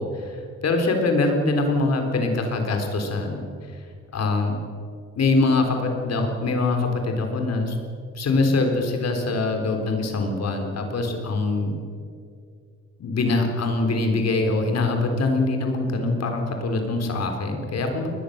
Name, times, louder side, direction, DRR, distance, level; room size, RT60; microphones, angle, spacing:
voice 1, 0.0-3.4 4.1-4.6 5.1-7.8 8.2-11.8 13.0-18.1, left 3 dB, 55° left, 4 dB, 4.0 m, -23 dB
21.5 x 20.0 x 6.8 m, 2.2 s
cardioid pair, 90°, 30 cm